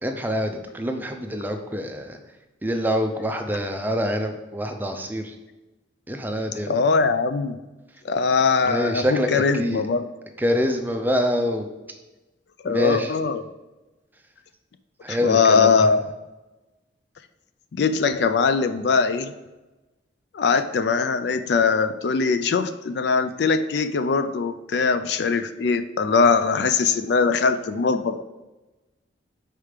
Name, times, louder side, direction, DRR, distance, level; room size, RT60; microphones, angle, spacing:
voice 1, 0.0-2.2 2.6-5.4 6.1-6.7 8.6-9.8 10.4-11.7 12.6-13.1 15.0-15.9, equal, 10° right, 5 dB, 0.4 m, -25 dB
voice 2, 6.7-7.6 8.0-10.1 12.6-13.4 15.1-16.0 17.7-19.3 20.3-28.2, left 5 dB, 55° left, 10 dB, 0.3 m, -21 dB
5.1 x 4.4 x 4.9 m, 1.1 s
head